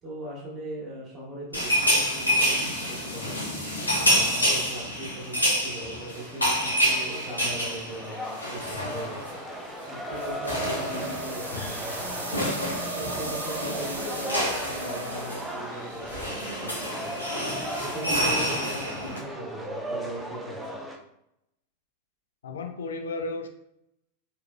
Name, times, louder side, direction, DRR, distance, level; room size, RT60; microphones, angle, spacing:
voice 1, 0.0-3.5 3.9-9.2 9.9-12.5 13.0-17.3 17.8-20.8, right 1 dB, 25° right, -8 dB, 1.4 m, -39 dB
sound 1, 1.5-9.4 9.7-9.9 10.1-19.2, equal, 85° left, 1.1 m, -28 dB
sound 2, 2.7-21.0, right 1 dB, 5° right, 0.6 m, -38 dB
sound 3, 10.5-15.6, right 2 dB, 80° right, 0.7 m, -38 dB
voice 2, 22.4-23.5, left 3 dB, 65° left, 6 dB, 0.5 m, -33 dB
4.6 x 3.1 x 2.3 m, 0.80 s
figure-of-eight pair, 90°, 0 cm